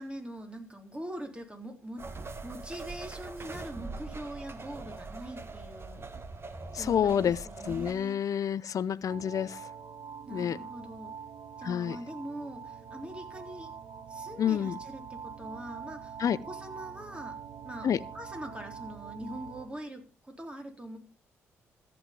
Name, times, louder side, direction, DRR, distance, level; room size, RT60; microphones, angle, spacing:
voice 1, 0.0-2.0 2.4-6.1 6.7-8.2 10.2-11.1 11.6-13.7 14.1-16.2 16.4-17.4 17.6-17.9 18.1-21.0, right 1 dB, 15° right, 3.7 m, -42 dB
sound 1, 2.0-7.9, right 3 dB, 35° right, 1.6 m, -42 dB
voice 2, 6.7-9.7 10.3-10.6 11.6-12.0 14.4-14.8 16.2-16.4 17.8-18.0, left 9 dB, 50° left, 0.6 m, -29 dB
sound 2, 9.1-19.7, right 6 dB, 60° right, 2.2 m, -44 dB
14.0 x 8.0 x 5.2 m
hypercardioid pair, 40°, 7 cm